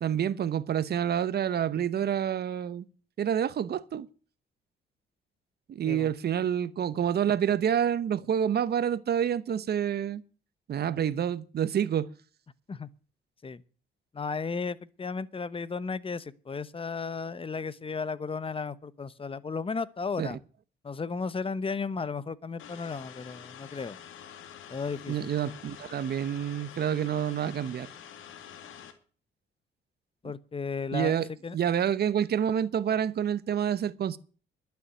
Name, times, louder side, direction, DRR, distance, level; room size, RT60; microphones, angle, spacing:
voice 1, 0.0-2.8 3.2-4.1 5.7-10.2 10.7-12.1 20.2-20.3 25.1-27.9 30.9-31.3 31.5-34.2, right 9 dB, 55° right, 0.9 m, -28 dB
voice 2, 14.1-20.4 20.8-24.0 24.7-25.3 30.2-31.2 31.4-31.6, left 4 dB, 25° left, 0.9 m, -34 dB
sound 1, 22.6-28.9, left 9 dB, 85° left, 2.1 m, -47 dB
11.5 x 7.0 x 9.1 m
cardioid pair, 90°, 20 cm